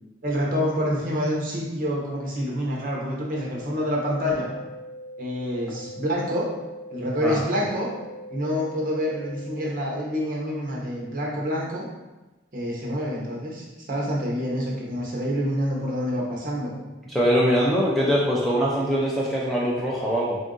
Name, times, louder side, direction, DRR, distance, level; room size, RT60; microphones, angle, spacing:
voice 1, 0.2-4.5 5.2-6.5 6.9-7.9 8.3-11.8 12.5-16.7, equal, 45° right, -4 dB, 0.8 m, -27 dB
sound 1, 3.6-9.6, equal, 30° left, 1.1 m, -41 dB
voice 2, 17.1-20.4, equal, ahead, -6 dB, 0.4 m, -22 dB
3.6 x 2.6 x 3.7 m, 1.1 s
head